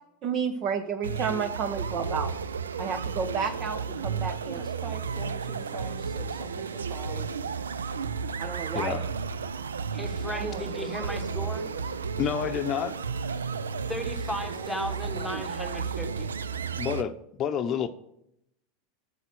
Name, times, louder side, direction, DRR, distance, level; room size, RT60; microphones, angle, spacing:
voice 1, 0.2-2.3 2.8-4.7 8.4-9.0, right 6 dB, 40° right, 10 dB, 0.8 m, -31 dB
sound 1, 1.0-17.0, right 5 dB, 85° right, 0.5 m, -33 dB
voice 2, 4.6-7.3 10.3-12.0 14.5-15.4, right 2 dB, 25° right, 5 dB, 2.1 m, -44 dB
voice 3, 8.7-9.1 12.2-12.9 16.7-17.1 17.4-17.9, left 8 dB, 40° left, 9 dB, 0.7 m, -28 dB
voice 4, 9.9-11.7 13.9-16.3, left 1 dB, ahead, 5 dB, 1.6 m, -36 dB
8.1 x 7.9 x 6.1 m, 0.77 s
hypercardioid pair, 90°, 0 cm